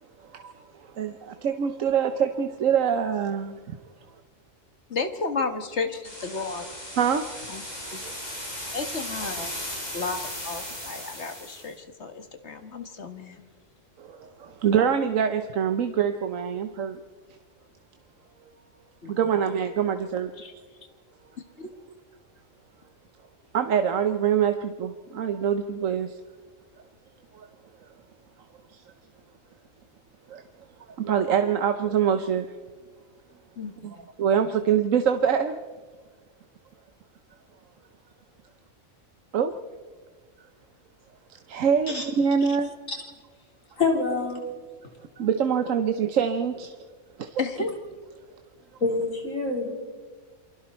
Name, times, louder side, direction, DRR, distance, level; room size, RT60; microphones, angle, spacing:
voice 1, 0.8-3.8 7.0-7.3 7.8-8.2 14.0-17.0 19.1-20.3 23.5-26.1 27.3-27.5 28.7-28.8 30.3-30.4 31.0-32.5 33.8-35.6 39.3-39.5 41.5-42.7 45.2-46.7 47.2-47.4, right 7 dB, 80° right, 1.3 m, -25 dB
voice 2, 4.9-6.7 7.5-7.6 7.9-8.0 8.7-9.5 9.9-13.4 19.0-19.1 20.4-20.5 21.6-21.7 33.6-33.7 42.5-42.6 47.4-47.7, left 4 dB, 60° left, 1.9 m, -32 dB
sound 1, 6.0-11.7, left 1 dB, 30° left, 5.3 m, -36 dB
voice 3, 43.8-44.4 48.8-49.7, left 3 dB, 90° left, 4.8 m, -26 dB
28.0 x 23.5 x 4.4 m
omnidirectional pair, 1.3 m